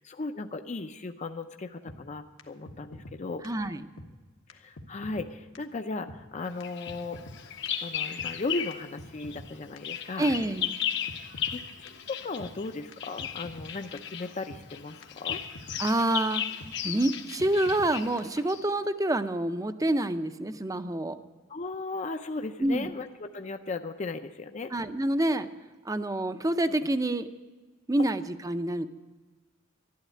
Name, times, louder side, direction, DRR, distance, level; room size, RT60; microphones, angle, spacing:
voice 1, 0.0-3.4 4.5-10.3 11.2-15.4 21.5-24.7, left 3 dB, 35° left, 7 dB, 0.5 m, -37 dB
sound 1, 1.9-2.0 2.4-2.5 2.7-3.2 3.4-3.5 4.0-4.1 4.5-4.6 4.8-5.3 5.5-5.6 6.1-6.2 6.6-6.7 6.9-7.4 7.7-7.8 8.2-8.3 8.7-9.5 9.8-9.9 10.3-10.4 10.8-10.9 11.1-11.6 11.9-12.0 12.4-12.5 12.9-13.0 13.2-13.7 14.0-14.1 14.5-14.6 15.0-15.1 15.3-15.8 16.1-16.2 16.6-16.7 17.1-17.2 17.4-17.9 18.2-18.3, left 1 dB, 75° left, 1.3 m, -45 dB
voice 2, 3.4-3.8 10.2-10.8 15.8-16.4 16.8-21.2 22.6-22.9 24.7-25.5 25.8-27.3 27.9-28.9, right 1 dB, 15° right, 11 dB, 0.6 m, -27 dB
Bird vocalization bird call bird song, 6.6-8.9 9.2-18.7, left 9 dB, 60° left, 0.9 m, -36 dB
12.5 x 11.5 x 8.4 m, 1.3 s
head